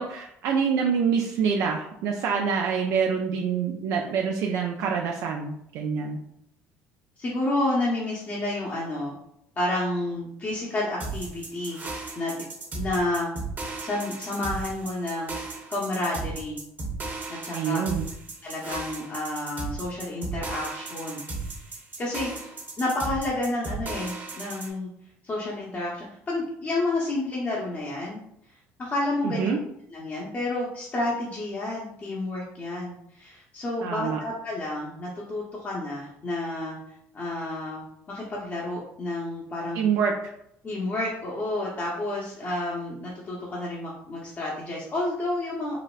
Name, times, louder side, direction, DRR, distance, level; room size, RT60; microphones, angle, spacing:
voice 1, 0.0-6.2 17.5-18.1 29.2-29.6 33.8-34.2 39.7-40.3, right 6 dB, 70° right, 1 dB, 0.4 m, -26 dB
voice 2, 7.2-9.1 9.6-11.8 12.2-12.3 12.7-13.3 13.8-16.6 17.3-17.8 18.4-21.6 22.0-22.3 22.8-24.9 25.2-28.2 28.8-29.5 29.9-36.8 37.1-37.8 38.1-39.8 40.6-45.8, left 2 dB, 35° left, -5 dB, 0.8 m, -30 dB
sound 1, 11.0-24.7, right 3 dB, 35° right, 0.9 m, -35 dB
3.9 x 2.0 x 2.4 m, 0.76 s
supercardioid pair, 85°, 6 cm